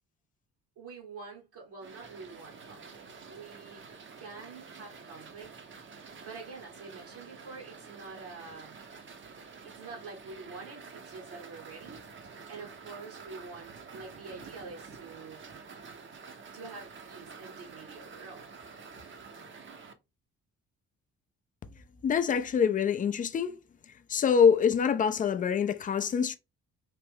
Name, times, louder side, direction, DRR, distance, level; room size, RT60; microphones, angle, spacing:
voice 1, 0.8-3.8 4.2-5.5 6.2-8.7 9.6-12.0 12.5-15.4 16.5-18.5, right 4 dB, 60° right, 1.1 m, -46 dB
sound 1, 1.8-19.9, right 5 dB, 30° right, 0.7 m, -49 dB
voice 2, 22.0-23.5 24.1-26.3, left 7 dB, 20° left, 0.4 m, -25 dB
3.3 x 2.5 x 3.4 m
figure-of-eight pair, 45°, 42 cm